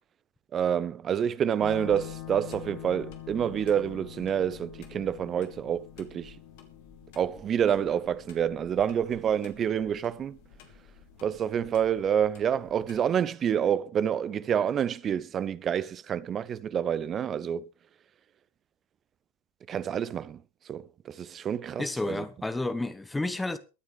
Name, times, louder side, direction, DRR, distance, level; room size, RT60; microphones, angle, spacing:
voice 1, 0.5-6.4 7.2-10.4 11.2-17.7 19.7-22.2, right 8 dB, 25° right, 0.7 m, -28 dB
sound 1, 1.6-13.1, left 10 dB, 50° left, 2.8 m, -46 dB
voice 2, 21.8-23.6, left 2 dB, 5° left, 1.0 m, -31 dB
22.5 x 9.5 x 3.3 m
figure-of-eight pair, 90°, 0 cm